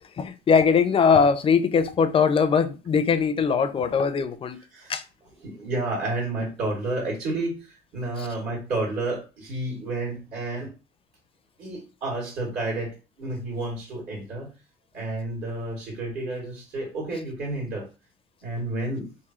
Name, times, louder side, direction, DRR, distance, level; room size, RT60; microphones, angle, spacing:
voice 1, 0.2-4.6 4.9-5.0 8.2-8.3, left 6 dB, 35° left, 0.4 m, -21 dB
voice 2, 5.4-10.7 11.6-14.5 14.9-17.9 18.4-19.1, right 2 dB, 65° right, 2.1 m, -30 dB
3.6 x 2.6 x 3.0 m
cardioid pair, 110°, 17 cm